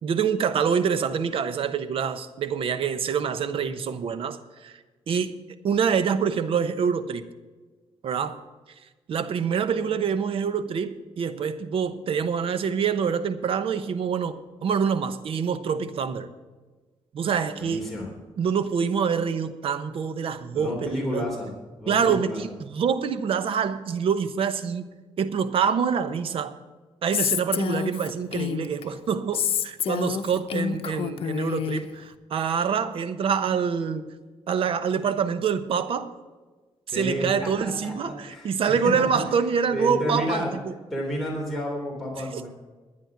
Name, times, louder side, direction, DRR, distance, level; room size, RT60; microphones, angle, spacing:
voice 1, 0.0-4.8 5.1-5.3 5.6-7.2 8.0-8.4 9.1-16.3 17.1-17.9 18.4-21.3 21.9-24.9 25.2-26.6 27.0-34.1 34.5-36.1 36.9-40.4 42.2-42.5, right 6 dB, 70° right, 1.0 m, -26 dB
voice 2, 17.6-18.1 20.5-21.5 21.8-22.5 36.9-38.5 39.7-40.5 40.9-42.5, equal, 5° left, 3.4 m, -31 dB
Female speech woman speaking, 27.1-28.8 29.3-31.8, left 8 dB, 75° left, 0.8 m, -28 dB
12.0 x 9.8 x 6.0 m
cardioid pair, 105°, 10 cm